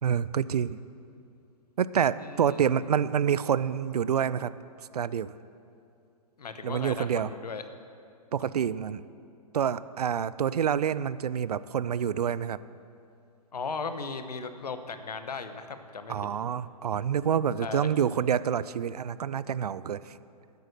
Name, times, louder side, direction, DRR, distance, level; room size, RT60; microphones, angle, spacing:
voice 1, 0.0-0.8 1.8-4.5 4.9-5.3 6.6-7.3 8.3-9.0 9.5-12.6 16.1-20.2, right 8 dB, 80° right, 17 dB, 0.4 m, -27 dB
voice 2, 2.2-2.6 6.4-7.6 13.5-16.1 17.6-17.9, left 4 dB, 85° left, 9 dB, 1.0 m, -37 dB
12.0 x 9.2 x 6.6 m, 2.5 s
hypercardioid pair, 125°, 20 cm